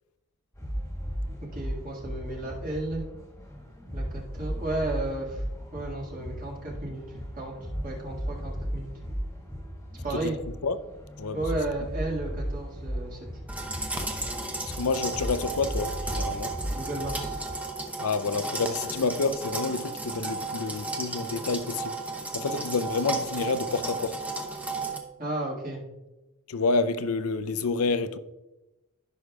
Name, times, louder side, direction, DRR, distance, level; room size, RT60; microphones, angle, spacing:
sound 1, 0.5-17.5, equal, 15° left, 1.5 m, -36 dB
voice 1, 1.5-3.0 3.9-5.4 5.7-7.0 7.3-7.6 7.8-8.9 10.0-10.4 11.3-13.2 16.7-17.3 25.2-25.8, right 2 dB, 40° right, 1.9 m, -33 dB
sound 2, 13.5-25.0, right 2 dB, 5° right, 0.7 m, -34 dB
voice 2, 14.6-16.5 18.0-22.0 22.3-24.2 26.5-28.2, left 4 dB, 85° left, 0.6 m, -28 dB
15.0 x 6.4 x 2.3 m
head